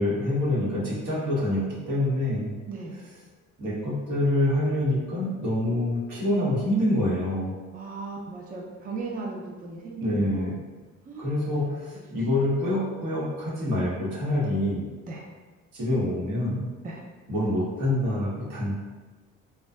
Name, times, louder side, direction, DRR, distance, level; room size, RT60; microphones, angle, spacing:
voice 1, 0.0-2.5 3.6-7.5 10.0-10.6 11.2-14.9 15.7-16.7 17.3-18.7, left 1 dB, 80° right, -7 dB, 1.0 m, -26 dB
voice 2, 2.7-3.0 7.7-10.6 11.0-11.8 12.1-12.2 15.1-15.2 16.8-17.0, right 3 dB, 30° right, -2 dB, 0.4 m, -37 dB
2.5 x 2.2 x 2.2 m, 1.3 s
cardioid pair, 90°, 30 cm